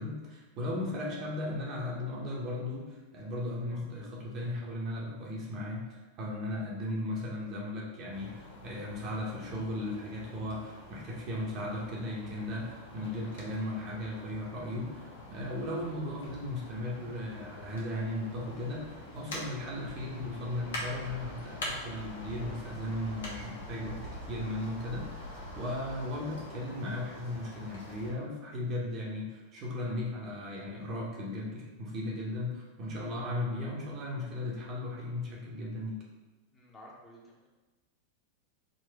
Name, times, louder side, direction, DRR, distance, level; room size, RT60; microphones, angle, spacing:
voice 1, 0.0-24.0 24.3-36.0, left 1 dB, 35° right, -4 dB, 1.0 m, -36 dB
sound 1, 8.1-28.1, left 1 dB, 65° left, 1.0 m, -44 dB
voice 2, 36.5-37.5, equal, 20° left, -3 dB, 0.8 m, -53 dB
3.9 x 2.6 x 3.4 m, 1.2 s
figure-of-eight pair, 90°, 0 cm